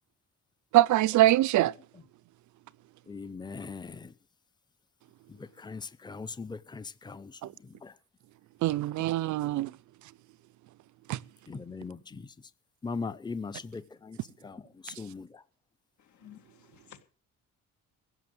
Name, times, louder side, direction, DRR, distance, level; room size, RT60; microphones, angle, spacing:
voice 1, 0.7-1.7 7.4-7.5 8.6-9.8 11.1-11.2 14.9-15.0, right 15 dB, 75° right, 0.5 m, -24 dB
voice 2, 3.1-4.1 5.3-7.9 11.5-12.3 12.8-15.4, left 4 dB, 15° left, 0.8 m, -40 dB
voice 3, 16.0-17.0, left 10 dB, 70° left, 2.1 m, -54 dB
16.0 x 6.8 x 7.9 m
cardioid pair, 90°, 30 cm